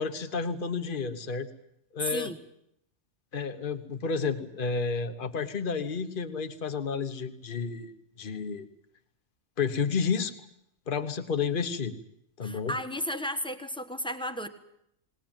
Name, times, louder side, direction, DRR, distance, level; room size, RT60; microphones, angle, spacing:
voice 1, 0.0-1.5 1.9-2.3 3.3-7.9 8.2-8.7 9.6-10.3 10.9-11.9 12.4-12.7, left 5 dB, 45° left, 9 dB, 1.3 m, -31 dB
voice 2, 2.0-2.4 12.4-14.5, equal, 5° left, 7 dB, 1.3 m, -33 dB
20.0 x 19.5 x 9.0 m, 0.77 s
omnidirectional pair, 1.3 m